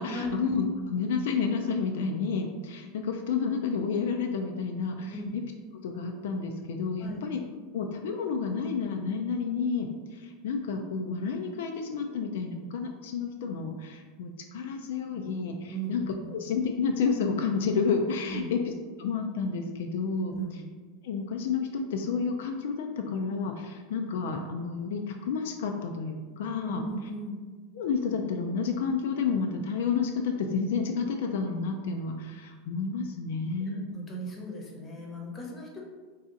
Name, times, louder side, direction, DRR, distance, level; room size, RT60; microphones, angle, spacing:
voice 1, 0.0-5.2 5.8-7.4 7.7-18.7 19.0-20.3 21.0-26.8 27.8-33.9, left 5 dB, 80° left, 4 dB, 0.3 m, -30 dB
voice 2, 15.7-16.3 18.3-18.6 20.3-20.7 26.7-27.4 33.6-35.8, right 1 dB, 20° left, -2 dB, 0.7 m, -37 dB
2.7 x 2.4 x 3.7 m, 1.4 s
supercardioid pair, 140°, 0 cm